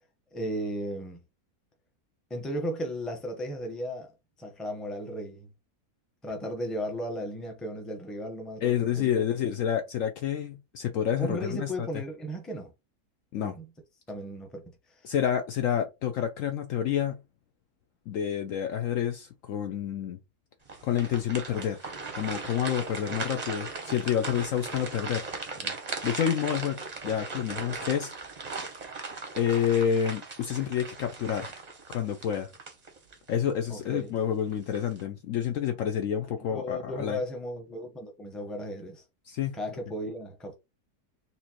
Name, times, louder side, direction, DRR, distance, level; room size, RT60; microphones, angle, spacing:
voice 1, 0.3-1.2 2.3-4.1 4.4-5.5 6.2-9.3 11.2-12.7 13.4-13.7 14.1-15.0 25.6-25.8 33.7-34.1 36.4-39.0 39.5-40.6, equal, ahead, 0.6 m, -35 dB
voice 2, 8.6-11.7 13.3-13.6 15.0-17.2 18.1-20.2 20.8-21.8 22.2-25.3 26.0-28.1 29.4-31.5 31.9-32.5 33.3-37.2 39.3-39.6, left 9 dB, 70° left, 0.8 m, -29 dB
sound 1, 20.7-33.3 33.8-33.9 34.5-35.0, right 4 dB, 35° right, 0.7 m, -38 dB
4.3 x 2.7 x 2.9 m
omnidirectional pair, 1.7 m